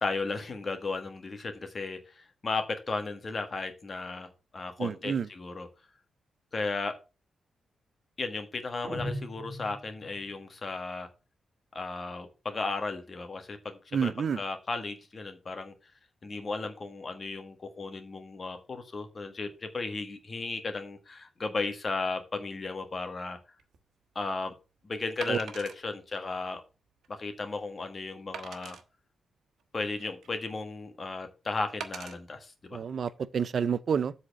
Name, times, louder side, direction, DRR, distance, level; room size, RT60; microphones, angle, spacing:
voice 1, 0.0-5.7 6.5-6.9 8.2-11.1 11.7-14.1 14.3-15.9 16.2-23.4 24.1-24.5 24.8-26.6 27.1-28.8 29.7-32.8, left 3 dB, 30° left, 1.5 m, -35 dB
voice 2, 4.8-5.3 13.9-14.4 25.3-25.4 32.7-34.1, right 7 dB, 45° right, 0.5 m, -29 dB
sound 1, 8.8-10.3, equal, 10° right, 2.0 m, -38 dB
Wood, 23.6-23.8 25.2-25.8 26.4-26.5 27.0-27.1 28.3-28.8 29.6-30.4 31.8-32.2 32.9-33.1, right 7 dB, 85° right, 1.3 m, -42 dB
7.8 x 4.3 x 7.0 m
wide cardioid pair, 170°, 0 cm